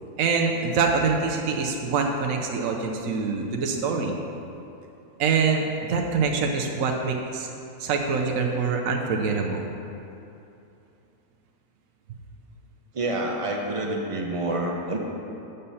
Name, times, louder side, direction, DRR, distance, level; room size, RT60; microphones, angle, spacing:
voice 1, 0.2-4.2 5.2-7.5 7.8-9.7, right 5 dB, 70° right, 1 dB, 1.1 m, -25 dB
voice 2, 12.9-15.0, right 2 dB, 25° right, 0 dB, 0.8 m, -27 dB
7.8 x 6.9 x 5.5 m, 2.8 s
omnidirectional pair, 1.5 m